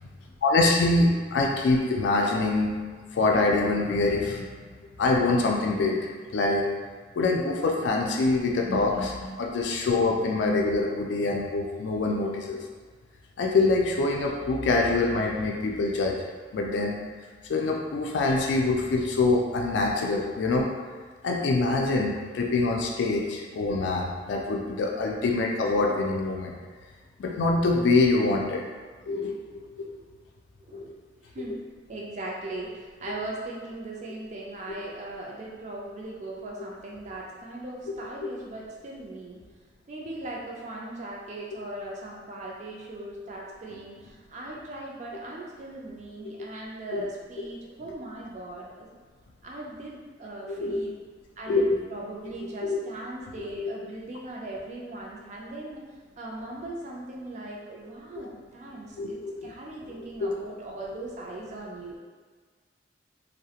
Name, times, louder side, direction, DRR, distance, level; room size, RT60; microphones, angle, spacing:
voice 1, 0.4-2.8 3.1-4.5 5.0-6.0 6.3-6.7 7.2-12.6 13.4-16.2 16.5-17.0 17.5-20.7 21.2-26.5 27.2-28.6 29.1-29.4 29.9-30.0 30.7-30.8 38.2-38.3 46.2-46.3 46.9-47.0 50.5-50.8 51.5-51.8 52.6-52.8 53.4-53.7 59.0-59.5 60.2-60.3, left 3 dB, 85° left, 0 dB, 0.3 m, -25 dB
voice 2, 31.9-39.4 39.9-48.9 49.4-50.9 51.4-55.8 56.2-62.0, right 1 dB, 40° right, -3 dB, 0.3 m, -39 dB
2.3 x 2.0 x 2.8 m, 1.5 s
head